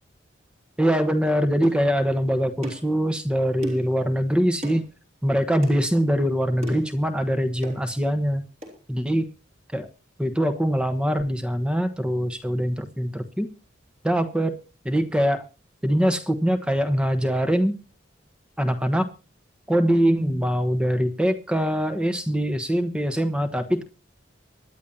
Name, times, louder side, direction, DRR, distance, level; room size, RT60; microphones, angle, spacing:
voice 1, 0.8-4.9 5.2-8.4 8.9-9.3 9.7-9.9 10.2-13.5 14.0-14.5 14.8-15.4 15.8-17.7 18.6-19.1 19.7-23.8, equal, 5° right, 7 dB, 1.2 m, -23 dB
sound 1, 1.6-1.8 2.6-2.9 3.6-3.9 4.6-4.8 5.6-5.8 6.6-6.9 7.6-7.8 8.6-8.8, equal, 35° right, 3.9 m, -35 dB
24.5 x 10.5 x 2.9 m, 0.32 s
head